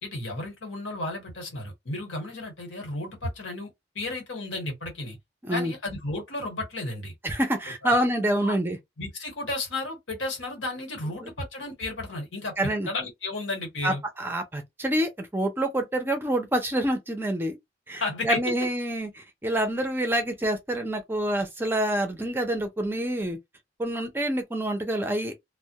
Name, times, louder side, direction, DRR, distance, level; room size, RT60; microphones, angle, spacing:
voice 1, 0.0-3.7 3.9-5.2 5.5-7.1 7.8-8.0 8.4-8.6 9.0-14.0 17.9-18.4, left 2 dB, 90° left, 1.1 m, -33 dB
voice 2, 5.4-5.7 7.2-8.8 11.2-11.3 12.6-12.9 13.8-17.6 17.9-23.4 23.8-25.4, right 1 dB, 10° right, 0.4 m, -27 dB
2.2 x 2.0 x 2.8 m
head